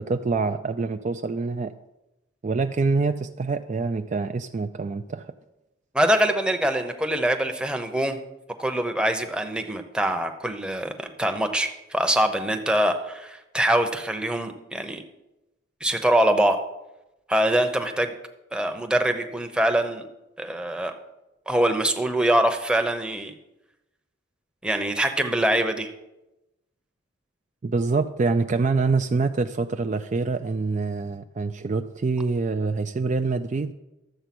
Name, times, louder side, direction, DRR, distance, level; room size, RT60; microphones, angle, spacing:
voice 1, 0.0-1.7 2.4-5.3 27.6-33.7, right 3 dB, 35° right, 8 dB, 0.4 m, -25 dB
voice 2, 5.9-8.2 8.6-15.0 15.8-16.6 17.3-18.1 18.5-20.0 20.4-20.9 21.5-23.3 24.6-25.9, right 1 dB, 5° right, 5 dB, 0.8 m, -24 dB
12.5 x 7.7 x 6.0 m, 0.97 s
head